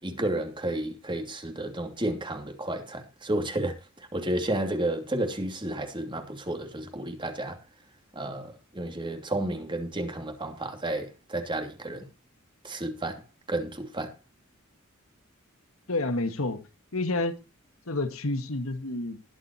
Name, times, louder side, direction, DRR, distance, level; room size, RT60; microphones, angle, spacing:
voice 1, 0.0-3.7 4.1-7.6 8.1-12.1 12.6-13.2 13.5-14.2, right 1 dB, 25° right, 2.8 m, -31 dB
voice 2, 15.9-16.6 16.9-17.4 17.9-19.2, left 2 dB, 75° left, 1.8 m, -29 dB
20.5 x 7.9 x 2.9 m
head